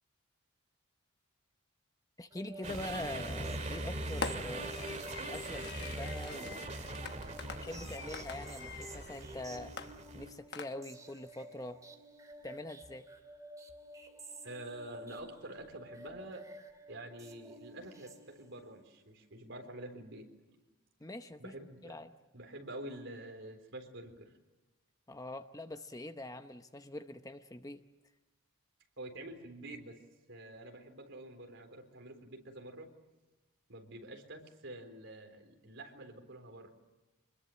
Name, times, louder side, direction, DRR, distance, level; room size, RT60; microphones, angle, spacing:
voice 1, 2.2-6.6 7.6-9.7 10.1-11.8 12.4-13.1 21.0-21.5 21.8-22.1 25.1-27.8, left 1 dB, 15° left, 8 dB, 0.8 m, -44 dB
sound 1, 2.3-18.7, right 1 dB, 15° right, 2.5 m, -51 dB
sound 2, 2.6-10.3, right 2 dB, 35° right, 2.1 m, -41 dB
Fireworks, 2.7-3.1 4.2-9.3 9.8-11.1, left 5 dB, 50° left, 1.1 m, -45 dB
voice 2, 14.4-16.4 16.9-20.6 21.4-22.0 22.3-24.3 29.0-30.0 30.3-32.9 33.7-36.7, right 1 dB, 60° right, 4 dB, 3.9 m, -47 dB
26.0 x 21.0 x 7.7 m, 1.1 s
head